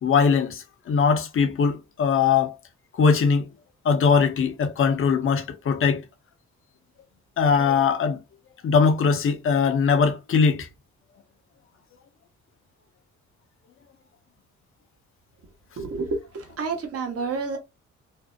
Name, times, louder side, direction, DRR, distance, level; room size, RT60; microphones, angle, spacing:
voice 1, 0.0-2.6 3.0-3.5 3.8-6.0 7.4-8.2 8.6-10.7, left 5 dB, 45° left, 0.6 m, -21 dB
voice 2, 15.8-17.6, right 4 dB, 50° right, 0.9 m, -29 dB
2.6 x 2.0 x 2.4 m
cardioid pair, 90°, 30 cm